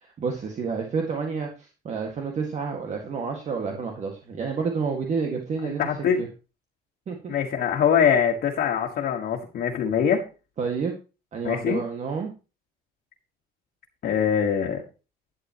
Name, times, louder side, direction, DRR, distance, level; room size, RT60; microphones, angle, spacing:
voice 1, 0.0-5.8 6.2-6.3 7.1-7.3 10.6-10.9 11.3-12.3, right 5 dB, 45° right, 2 dB, 1.9 m, -29 dB
voice 2, 5.6-6.2 7.3-10.2 11.4-11.8 14.0-14.8, left 7 dB, 60° left, 0 dB, 1.7 m, -23 dB
11.5 x 10.0 x 3.0 m, 0.33 s
cardioid pair, 110°, 17 cm